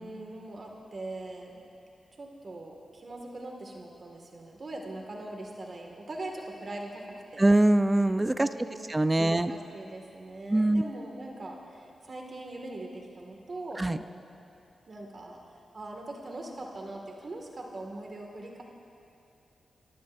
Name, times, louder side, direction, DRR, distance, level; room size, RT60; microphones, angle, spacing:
voice 1, 0.0-1.6 2.2-7.5 8.4-13.8 14.9-15.4 15.7-18.6, right 2 dB, 50° right, 1 dB, 2.0 m, -41 dB
voice 2, 7.4-8.5 8.9-9.5 10.5-10.8 13.8-14.0, right 1 dB, 20° right, 11 dB, 0.6 m, -23 dB
28.5 x 14.5 x 2.6 m, 2.7 s
cardioid pair, 50°, 0 cm